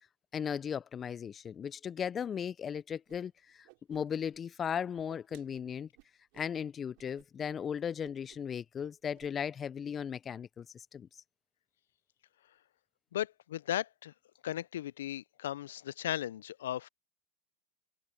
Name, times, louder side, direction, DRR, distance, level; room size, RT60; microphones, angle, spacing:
voice 1, 0.3-5.9 6.4-11.1, left 8 dB, 30° left, 0.5 m, -37 dB
Whoosh swoosh swish, 3.1-3.2 3.5-4.4 4.6-6.5 6.9-7.3 7.5-7.7 8.0-8.5 8.8-9.3, right 35 dB, 60° right, 5.9 m, -60 dB
voice 2, 13.1-14.1 14.4-16.9, left 12 dB, 80° left, 0.5 m, -36 dB
hypercardioid pair, 100°, 0 cm